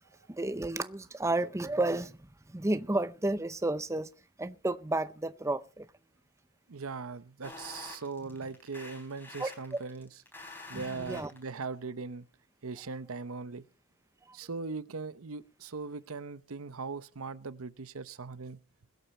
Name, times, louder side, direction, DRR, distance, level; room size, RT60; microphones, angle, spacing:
voice 1, 0.3-2.2 2.5-4.1 4.4-5.9 9.4-9.8 10.7-11.3 14.3-14.4, right 2 dB, 15° right, 0.6 m, -32 dB
voice 2, 6.7-10.1 10.7-12.3 12.6-13.6 14.3-18.6, right 4 dB, 75° right, 0.8 m, -40 dB
sound 1, 7.4-11.6, left 3 dB, 10° left, 3.6 m, -47 dB
21.5 x 8.3 x 4.3 m
head